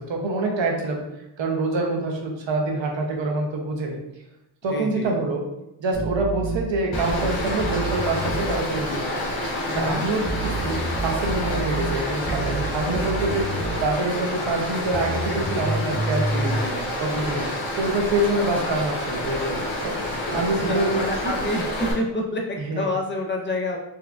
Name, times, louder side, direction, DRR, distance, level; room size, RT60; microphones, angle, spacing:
voice 1, 0.1-1.0 1.4-4.0 4.6-5.4 5.8-9.0 9.8-13.5 13.8-16.6 17.0-17.5 17.8-21.3 22.6-22.9, right 2 dB, 90° right, 1 dB, 0.8 m, -26 dB
voice 2, 4.7-5.1 9.7-10.0 16.1-16.9 20.2-23.8, left 1 dB, 25° left, 1 dB, 0.6 m, -28 dB
sound 1, 5.9-8.5 10.3-13.9 14.9-16.6, right 3 dB, 30° right, 0.4 m, -29 dB
Stream, 6.9-21.9, left 1 dB, 85° left, 1.2 m, -28 dB
4.1 x 2.3 x 2.4 m, 0.90 s
wide cardioid pair, 115°, 44 cm